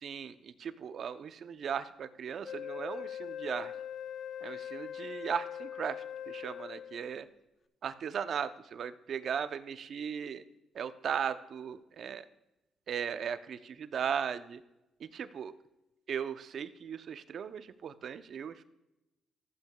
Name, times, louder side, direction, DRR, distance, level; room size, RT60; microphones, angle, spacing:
voice 1, 0.0-3.7 4.4-7.3 7.8-10.4 10.7-12.2 12.9-14.6 15.0-15.5 16.1-18.6, right 7 dB, 60° right, 11 dB, 0.6 m, -37 dB
Wind instrument woodwind instrument, 2.4-7.2, left 9 dB, 50° left, 0.4 m, -42 dB
14.5 x 8.3 x 2.3 m, 0.94 s
cardioid pair, 90°, 0 cm